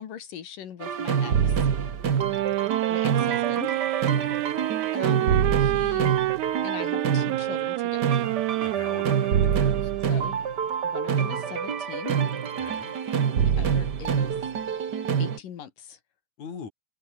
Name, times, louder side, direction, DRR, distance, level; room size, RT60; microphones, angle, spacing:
voice 1, 0.0-1.7 2.9-3.8 4.9-6.2 6.6-8.6 10.1-10.5 10.8-12.2 13.4-14.4 15.2-16.0, left 9 dB, 85° left, 3.8 m, -41 dB
sound 1, 0.8-15.4, right 7 dB, 45° right, 1.6 m, -26 dB
sound 2, 2.2-10.4, right 18 dB, 75° right, 1.9 m, -28 dB
voice 2, 4.0-4.4 8.6-9.9 12.5-12.9 16.4-16.7, left 6 dB, 60° left, 5.1 m, -42 dB
omnidirectional pair, 3.7 m